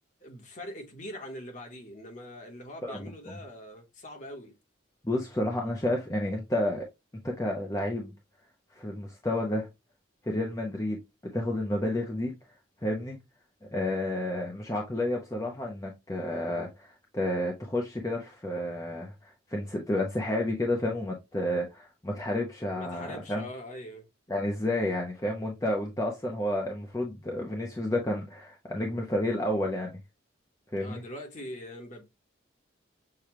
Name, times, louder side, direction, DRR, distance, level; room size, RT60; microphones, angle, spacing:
voice 1, 0.2-4.5 22.7-24.1 30.8-32.0, left 1 dB, 40° left, 1.2 m, -42 dB
voice 2, 2.8-3.4 5.0-6.9 7.2-8.1 8.7-9.7 10.2-11.0 11.3-12.3 12.8-13.2 13.7-23.4 24.3-30.0 30.7-31.0, left 1 dB, 15° left, 0.6 m, -31 dB
6.6 x 2.3 x 2.9 m
head